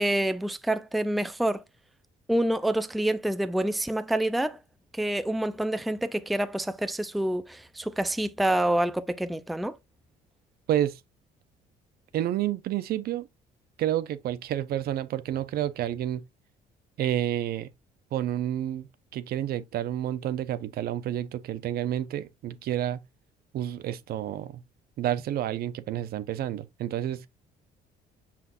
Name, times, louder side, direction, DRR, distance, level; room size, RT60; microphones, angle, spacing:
voice 1, 0.0-1.6 2.3-4.6 4.9-9.7, right 1 dB, ahead, 0.4 m, -27 dB
voice 2, 10.7-11.0 12.1-13.3 13.8-16.2 17.0-17.7 18.1-18.9 19.1-23.0 23.5-24.6 25.0-27.3, right 12 dB, 65° right, 0.7 m, -29 dB
6.3 x 5.8 x 2.5 m
cardioid pair, 110°, 17 cm